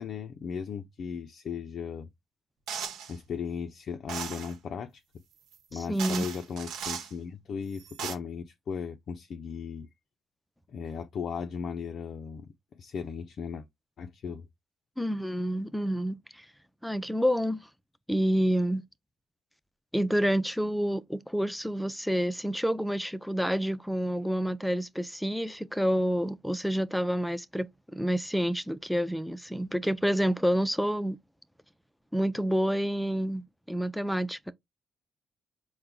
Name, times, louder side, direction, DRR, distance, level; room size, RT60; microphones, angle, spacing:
voice 1, 0.0-2.1 3.1-5.0 5.7-9.9 10.7-12.5 12.7-13.7 14.0-14.5, left 6 dB, 60° left, 0.4 m, -37 dB
sound 1, 2.7-3.1 4.1-4.5 5.5-5.6 6.0-7.1 7.7-8.1, right 7 dB, 90° right, 0.9 m, -37 dB
voice 2, 5.7-6.2 15.0-16.4 16.8-17.6 18.1-18.8 19.9-31.2 32.1-34.5, equal, ahead, 0.4 m, -28 dB
4.4 x 2.1 x 3.7 m
cardioid pair, 90°, 0 cm